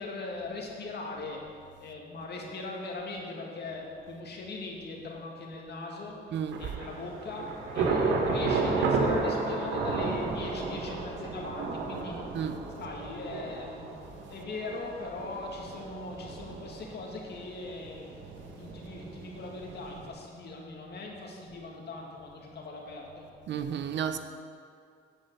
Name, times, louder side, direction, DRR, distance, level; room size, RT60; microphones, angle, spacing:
voice 1, 0.0-1.4 1.8-6.3 6.6-12.2 12.8-14.0 14.3-23.3, left 3 dB, 55° left, 0 dB, 2.1 m, -40 dB
Thunder / Rain, 6.5-20.1, right 3 dB, 85° right, 1.4 m, -33 dB
voice 2, 23.5-24.2, right 8 dB, 65° right, 9 dB, 0.7 m, -32 dB
10.0 x 5.5 x 7.7 m, 2.3 s
cardioid pair, 90°, 20 cm